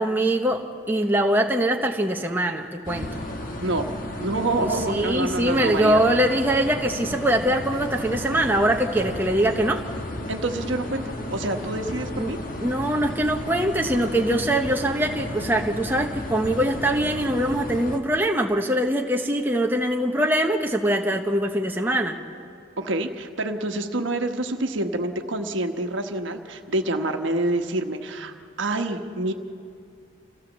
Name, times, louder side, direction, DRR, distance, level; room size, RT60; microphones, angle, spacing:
voice 1, 0.0-3.1 4.6-9.8 12.2-12.3 12.6-22.1, right 1 dB, 10° right, 1 dB, 1.0 m, -23 dB
sound 1, 2.8-18.0, left 1 dB, 40° left, 1.5 m, -33 dB
voice 2, 4.2-6.0 10.3-12.4 22.8-29.3, right 2 dB, 70° right, 5 dB, 1.3 m, -27 dB
27.0 x 16.0 x 7.4 m, 2.5 s
head